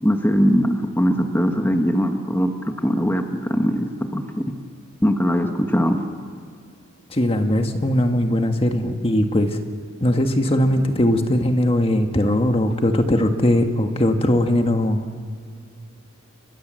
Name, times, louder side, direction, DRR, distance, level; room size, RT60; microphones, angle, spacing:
voice 1, 0.0-4.4 5.0-6.0, equal, 10° left, 4 dB, 1.5 m, -21 dB
voice 2, 7.1-9.6 10.0-15.2, left 1 dB, 25° left, 5 dB, 1.6 m, -20 dB
30.0 x 24.5 x 7.7 m, 2.2 s
head